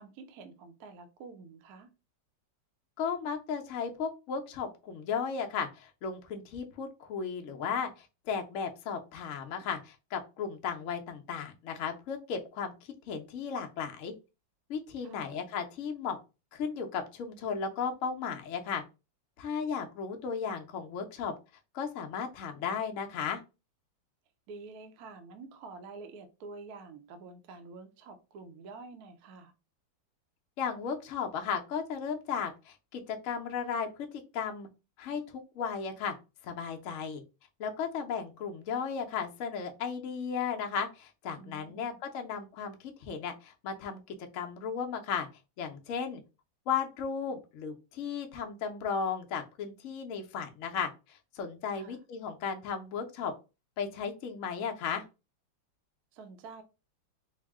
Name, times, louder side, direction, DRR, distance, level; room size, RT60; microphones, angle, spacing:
voice 1, 0.0-1.9 15.0-15.4 24.5-29.5 41.3-42.0 51.7-52.0 56.1-56.6, right 4 dB, 70° right, 1.0 m, -48 dB
voice 2, 3.0-12.7 13.1-14.1 14.7-16.2 16.5-18.8 19.4-21.3 21.7-23.4 30.6-33.9 34.3-34.7 35.0-36.1 36.4-37.2 37.6-44.0 44.3-45.3 45.6-46.2 46.7-53.3 53.8-55.0, left 6 dB, 75° left, 0.7 m, -35 dB
4.4 x 2.0 x 3.5 m
omnidirectional pair, 2.2 m